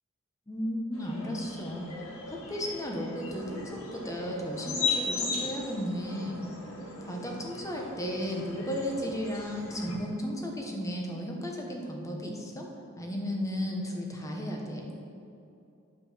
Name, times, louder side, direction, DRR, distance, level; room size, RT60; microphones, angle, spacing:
voice 1, 0.5-6.4 7.0-12.7 13.0-14.9, equal, 15° left, 0 dB, 1.2 m, -34 dB
sound 1, 0.9-10.0, left 4 dB, 80° left, 1.8 m, -37 dB
9.0 x 7.7 x 5.7 m, 2.7 s
head